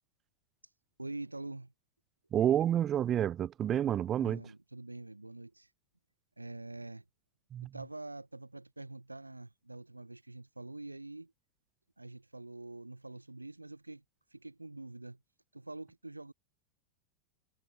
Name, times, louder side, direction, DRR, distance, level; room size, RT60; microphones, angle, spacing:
voice 1, 1.0-1.7 4.2-5.7 6.4-7.0 7.6-11.3 12.0-14.0 14.3-15.2 15.5-16.3, right 2 dB, 85° right, 4.7 m, -45 dB
voice 2, 2.3-4.4 7.5-7.7, right 10 dB, 30° right, 0.4 m, -29 dB
figure-of-eight pair, 90°, 0 cm